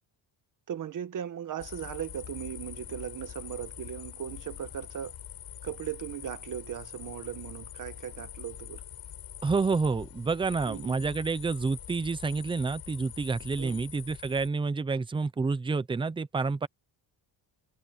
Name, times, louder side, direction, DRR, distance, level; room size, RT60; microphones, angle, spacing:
voice 1, 0.7-5.1 5.6-8.8 10.7-11.0 13.6-13.8, right 10 dB, 45° right, 1.7 m, -38 dB
sound 1, 1.6-14.5, left 11 dB, 55° left, 6.5 m, -44 dB
voice 2, 9.4-16.7, right 4 dB, 10° right, 0.6 m, -29 dB
cardioid pair, 175°, 45 cm